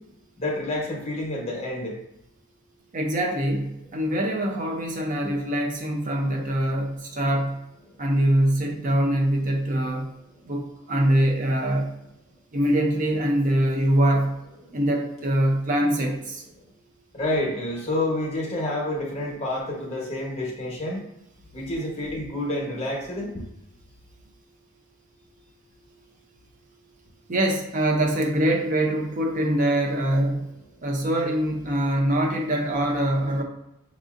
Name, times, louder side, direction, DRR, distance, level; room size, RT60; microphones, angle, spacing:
voice 1, 0.4-1.9 17.1-21.0 21.5-23.3, left 1 dB, 30° left, -3 dB, 1.0 m, -28 dB
voice 2, 2.9-7.6 8.0-10.1 10.5-11.9 12.5-14.4 14.7-16.4 27.3-30.5 30.8-33.4, right 1 dB, 40° right, 1 dB, 0.5 m, -23 dB
5.9 x 2.6 x 2.5 m, 0.84 s
head